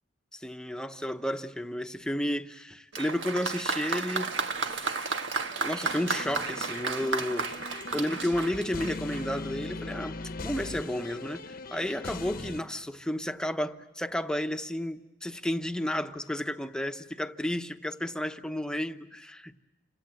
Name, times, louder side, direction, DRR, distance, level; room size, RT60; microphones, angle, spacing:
voice 1, 0.3-4.3 4.7-5.1 5.6-19.5, left 1 dB, 5° left, 0.9 m, -32 dB
Applause, 2.9-9.4, right 4 dB, 85° right, 1.6 m, -33 dB
sound 1, 5.8-12.6, left 2 dB, 55° left, 1.0 m, -40 dB
29.0 x 26.5 x 7.6 m
head